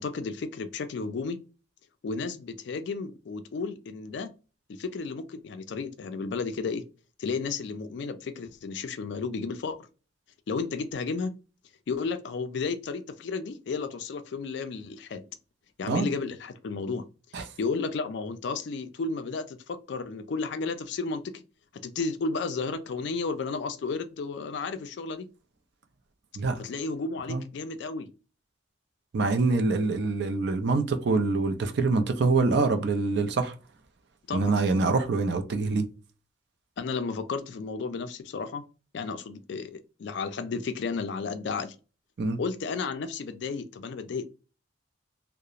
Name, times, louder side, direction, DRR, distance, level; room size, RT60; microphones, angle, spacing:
voice 1, 0.0-1.4 2.0-4.3 4.7-6.8 7.2-9.8 10.5-11.3 11.9-15.2 15.8-17.1 17.3-21.4 21.8-25.3 26.6-28.1 34.3-34.6 36.8-38.6 38.9-41.8 42.4-44.2, left 4 dB, 60° left, 0.3 m, -33 dB
voice 2, 29.1-33.5 34.3-35.9 42.2-42.4, right 3 dB, 55° right, 0.4 m, -25 dB
2.8 x 2.1 x 2.4 m
head